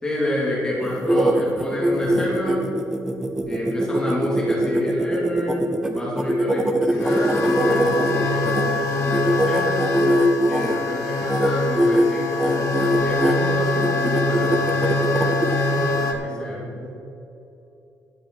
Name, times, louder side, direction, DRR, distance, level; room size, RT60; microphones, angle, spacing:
voice 1, 0.0-2.7 3.5-9.9 10.4-15.0 15.5-16.1 16.4-16.7, left 1 dB, 15° left, -6 dB, 2.9 m, -28 dB
sound 1, 0.8-8.6 9.1-10.8 11.2-11.5 11.8-12.1 12.4-13.3 13.8-15.5, right 1 dB, 10° right, 0.7 m, -22 dB
sound 2, 2.0-2.1 3.4-3.5 4.1-4.2 5.2-5.3 6.9-16.1, left 2 dB, 80° left, 1.4 m, -24 dB
voice 2, 15.5-16.9, equal, 40° right, -4 dB, 2.7 m, -37 dB
12.5 x 8.4 x 4.8 m, 2.9 s
cardioid pair, 165°, 6 cm